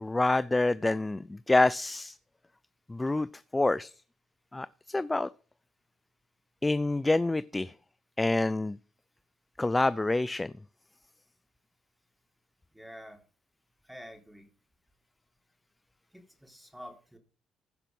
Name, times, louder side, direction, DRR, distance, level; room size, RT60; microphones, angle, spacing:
voice 1, 0.0-2.2 2.9-3.9 4.5-5.3 6.6-7.7 8.2-8.8 9.6-10.5, left 2 dB, 20° left, 0.4 m, -27 dB
voice 2, 12.7-13.2 13.8-14.5 16.1-17.2, equal, 5° right, 3.8 m, -48 dB
15.5 x 5.8 x 5.4 m
supercardioid pair, 55°, 0 cm